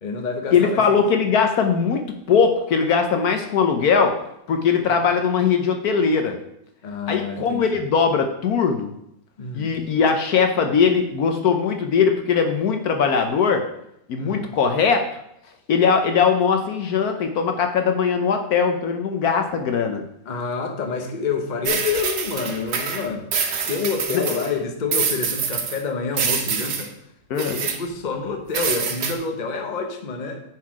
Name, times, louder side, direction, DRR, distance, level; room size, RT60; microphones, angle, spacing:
voice 1, 0.0-1.1 4.8-4.9 6.8-7.8 9.4-9.7 14.2-14.5 20.2-26.9 27.3-30.4, left 4 dB, 35° left, 4 dB, 0.9 m, -28 dB
voice 2, 0.5-4.1 4.5-6.4 7.1-8.9 9.5-13.6 14.1-15.1 15.7-20.0 24.1-24.2 27.3-27.7, left 6 dB, 65° left, 5 dB, 1.2 m, -20 dB
sound 1, 21.7-24.5 24.9-25.8 26.1-26.9 27.4-27.8 28.5-29.1, right 6 dB, 80° right, 1.6 m, -25 dB
9.6 x 4.7 x 4.8 m, 0.79 s
omnidirectional pair, 1.8 m